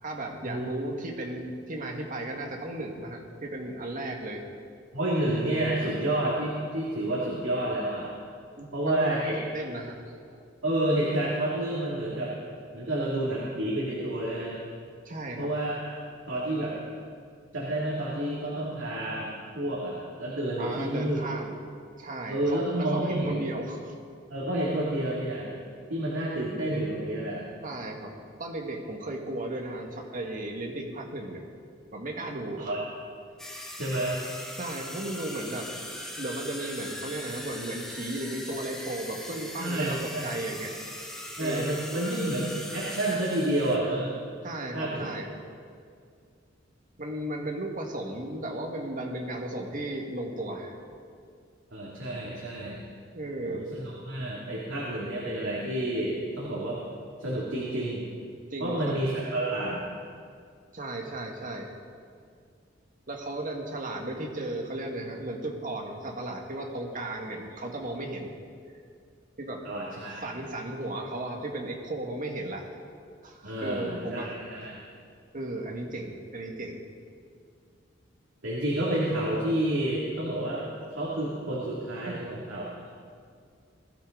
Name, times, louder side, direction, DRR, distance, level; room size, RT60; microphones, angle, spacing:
voice 1, 0.0-4.4 8.6-10.4 15.0-15.5 20.6-21.6 22.0-23.9 27.6-31.4 31.9-32.8 34.6-35.7 36.2-40.7 41.4-41.8 44.4-45.3 47.0-50.8 53.1-53.8 58.5-58.9 60.7-61.7 63.1-68.3 69.4-69.6 70.2-72.8 73.2-74.3 75.3-76.8 82.0-82.2, right 1 dB, 45° right, 1 dB, 1.9 m, -35 dB
voice 2, 4.9-8.1 8.7-9.3 10.6-12.3 12.7-14.6 15.4-15.9 16.3-16.7 17.5-21.2 22.3-23.4 24.3-25.6 25.9-27.5 32.6-32.8 33.8-34.2 39.6-40.3 41.4-44.1 44.7-45.1 51.7-52.8 53.4-56.8 57.2-58.1 58.6-59.8 69.6-70.3 73.4-74.8 78.4-80.6 80.9-82.7, right 1 dB, 85° right, -6 dB, 2.8 m, -29 dB
sound 1, 33.4-43.8, equal, 5° left, 1.8 m, -40 dB
21.0 x 13.0 x 4.0 m, 2.2 s
head